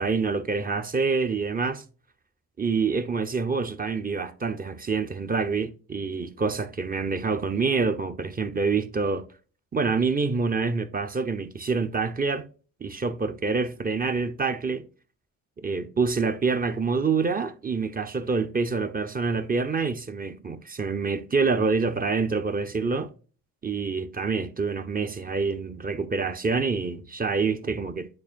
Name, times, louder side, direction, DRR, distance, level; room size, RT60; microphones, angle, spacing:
voice 1, 0.0-1.8 2.6-9.2 9.7-12.5 12.8-14.9 15.6-23.1 23.6-28.1, right 4 dB, 20° right, 0.7 m, -26 dB
9.6 x 4.3 x 2.5 m
figure-of-eight pair, 45°, 41 cm